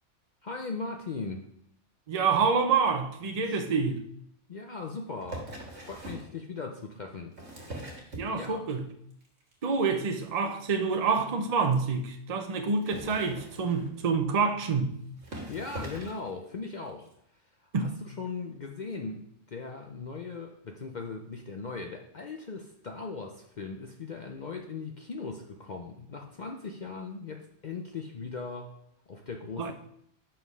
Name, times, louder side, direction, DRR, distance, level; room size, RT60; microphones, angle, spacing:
voice 1, 0.4-1.4 3.4-3.6 4.5-5.5 5.8-7.3 7.6-7.9 8.3-8.6 15.3-17.1 17.6-28.7 29.1-29.7, left 4 dB, 50° left, 0.6 m, -39 dB
voice 2, 2.1-4.1 8.1-8.9 9.6-15.0 17.7-18.0 29.6-29.7, right 5 dB, 40° right, 0.6 m, -27 dB
sound 1, 5.2-6.3 7.1-8.7 9.1-9.5 9.8-10.0 10.2-10.3 10.5-10.6 11.0-11.1 11.6-11.7 12.7-14.0 14.8-14.9 15.2-16.3 17.1-17.2, right 1 dB, 60° right, 1.8 m, -42 dB
5.7 x 5.1 x 5.5 m
omnidirectional pair, 1.3 m